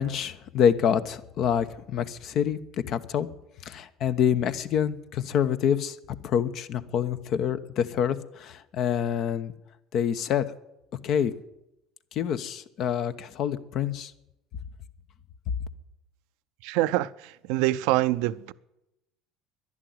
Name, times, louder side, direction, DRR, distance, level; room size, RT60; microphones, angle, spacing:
voice 1, 0.0-2.6 2.9-3.3 3.6-6.0 6.2-9.5 9.9-10.5 11.0-11.3 12.1-14.1, left 8 dB, 55° left, 1.0 m, -26 dB
voice 2, 16.6-18.5, right 17 dB, 70° right, 0.5 m, -25 dB
11.0 x 11.0 x 9.6 m
hypercardioid pair, 75°, 0 cm